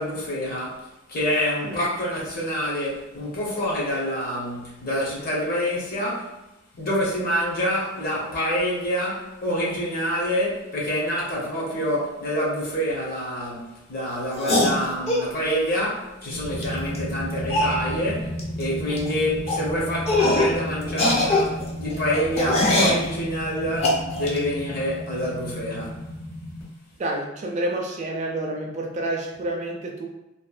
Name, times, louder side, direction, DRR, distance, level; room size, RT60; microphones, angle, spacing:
voice 1, 0.0-6.3 6.8-26.0, equal, 50° left, 0.8 m, -27 dB
sound 1, 14.4-15.3 16.6-16.7 16.9-17.0 17.5-17.8 18.4-18.6 18.9-19.1 19.5-19.6 20.1-20.6 20.9-23.0 23.8-24.4, left 1 dB, 30° left, 0.4 m, -22 dB
sound 2, 16.3-26.6, equal, 85° left, 1.0 m, -33 dB
voice 2, 27.0-30.1, right 1 dB, 35° right, 0.3 m, -29 dB
2.9 x 2.1 x 2.3 m
head